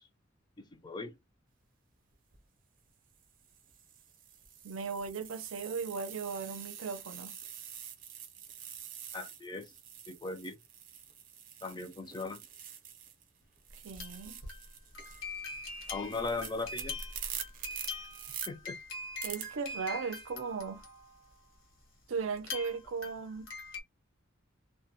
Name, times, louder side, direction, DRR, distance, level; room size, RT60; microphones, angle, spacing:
voice 1, 0.6-1.1 9.1-9.7 10.1-10.6 11.6-12.4 15.9-17.0 18.5-18.8, left 3 dB, 20° left, 0.4 m, -38 dB
sound 1, 2.1-2.4 3.1-13.3 13.6-18.5 19.2-19.4, right 9 dB, 45° right, 0.6 m, -46 dB
voice 2, 4.6-7.3 13.8-14.4 19.2-20.8 22.1-23.5, right 5 dB, 85° right, 0.5 m, -37 dB
sound 2, 13.7-21.3 22.4-23.8, left 3 dB, 75° left, 1.0 m, -43 dB
2.2 x 2.1 x 2.7 m
head